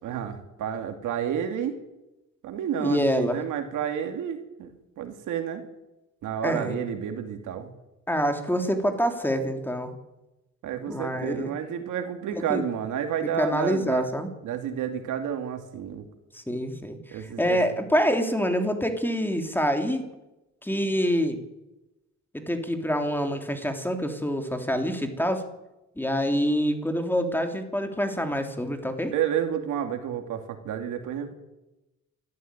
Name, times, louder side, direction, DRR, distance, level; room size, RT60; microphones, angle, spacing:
voice 1, 0.0-1.8 2.4-5.6 6.2-7.7 10.6-14.1 14.4-16.1 17.1-17.6 29.1-31.3, right 9 dB, 80° right, 6 dB, 2.6 m, -30 dB
voice 2, 2.8-3.4 6.4-6.8 8.1-9.9 10.9-11.5 12.3-12.6 13.4-14.3 16.3-17.0 17.4-20.0 20.6-21.4 22.3-25.4 26.0-29.1, equal, 5° left, 5 dB, 3.3 m, -26 dB
28.0 x 13.5 x 9.2 m, 1.0 s
cardioid pair, 90°, 30 cm